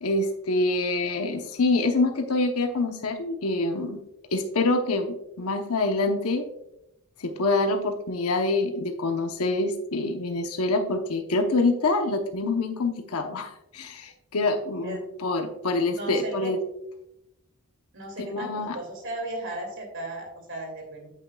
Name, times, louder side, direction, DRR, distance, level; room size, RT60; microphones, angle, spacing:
voice 1, 0.0-4.0 4.3-6.4 7.2-16.6 18.2-18.8, left 2 dB, 75° left, 5 dB, 0.9 m, -26 dB
voice 2, 15.9-16.5 17.9-21.1, right 1 dB, 55° right, 2 dB, 2.5 m, -36 dB
8.6 x 8.4 x 2.3 m, 0.84 s
head